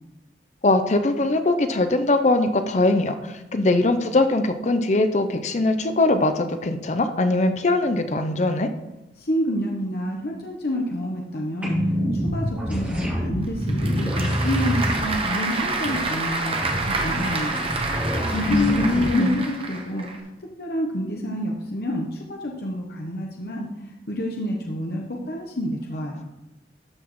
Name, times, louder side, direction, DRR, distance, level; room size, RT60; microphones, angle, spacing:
voice 1, 0.6-8.7 18.5-19.4, left 2 dB, 40° left, 8 dB, 0.6 m, -21 dB
voice 2, 9.2-17.6 18.3-20.1 20.4-23.7 24.1-26.3, equal, 60° left, 0 dB, 0.9 m, -28 dB
sound 1, 11.6-19.1, equal, 10° right, 2.7 m, -27 dB
Applause / Crowd, 13.4-20.2, right 3 dB, 30° right, 1.0 m, -28 dB
13.0 x 6.1 x 3.1 m, 0.95 s
head